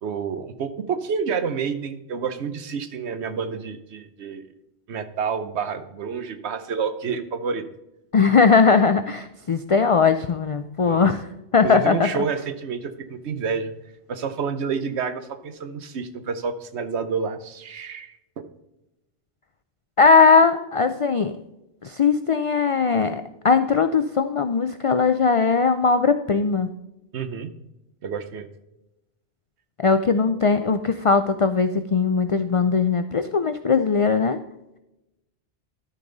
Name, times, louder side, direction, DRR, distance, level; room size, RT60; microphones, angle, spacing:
voice 1, 0.0-4.4 4.9-7.6 10.8-11.0 11.6-13.7 14.1-18.4 27.1-27.5 28.0-28.5, right 6 dB, 75° right, 10 dB, 1.1 m, -29 dB
voice 2, 8.1-11.2 11.5-12.1 20.0-21.4 21.8-26.7 29.8-34.4, left 5 dB, 60° left, 10 dB, 0.3 m, -19 dB
12.5 x 5.4 x 3.9 m, 0.93 s
omnidirectional pair, 1.2 m